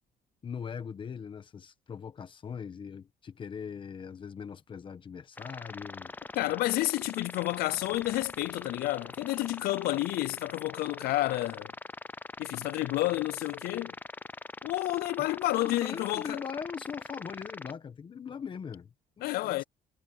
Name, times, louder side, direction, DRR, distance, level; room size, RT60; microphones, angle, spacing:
voice 1, 0.4-6.1 15.2-19.6, left 6 dB, 30° left, 1.2 m, -41 dB
sound 1, 5.4-17.7, left 3 dB, 10° left, 0.4 m, -43 dB
voice 2, 6.3-11.7 12.4-14.0 14.6-16.4 19.2-19.6, left 17 dB, 75° left, 0.4 m, -30 dB
cardioid pair, 150°, 16 cm